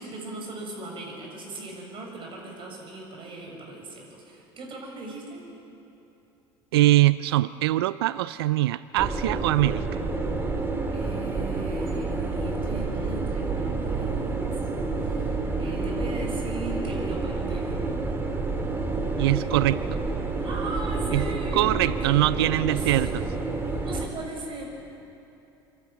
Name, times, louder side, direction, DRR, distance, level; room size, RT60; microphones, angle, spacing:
voice 1, 0.0-5.4 10.9-17.8 20.4-21.7 22.0-22.1 22.6-22.9 23.6-24.7, right 2 dB, 45° right, 0 dB, 7.2 m, -39 dB
voice 2, 6.7-10.0 19.1-20.0 21.1-21.2 21.5-23.3, right 16 dB, 80° right, 17 dB, 0.4 m, -23 dB
sound 1, 9.0-24.1, right 3 dB, 15° right, 2.9 m, -29 dB
26.0 x 12.0 x 9.6 m, 2.8 s
hypercardioid pair, 75°, 13 cm